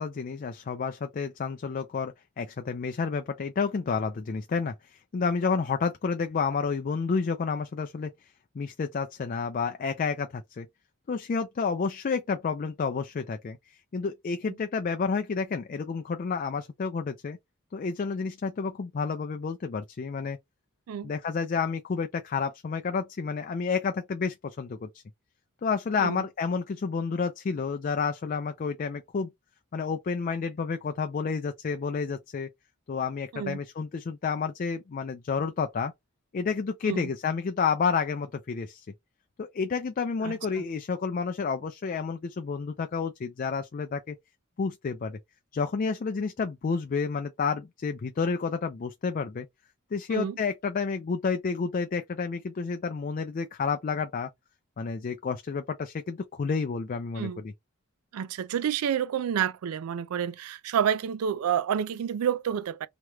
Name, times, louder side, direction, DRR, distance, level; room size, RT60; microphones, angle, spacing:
voice 1, 0.0-8.1 8.6-10.7 11.1-13.6 13.9-17.4 17.7-20.4 21.0-24.9 25.6-29.3 29.7-32.5 32.9-35.9 36.3-38.9 39.4-44.2 44.6-45.2 45.5-49.5 49.9-54.3 54.8-57.5, left 5 dB, 40° left, 0.3 m, -30 dB
voice 2, 40.2-40.6 50.1-50.4 57.1-57.4 58.1-62.9, right 8 dB, 90° right, 0.4 m, -29 dB
3.1 x 2.9 x 2.2 m
head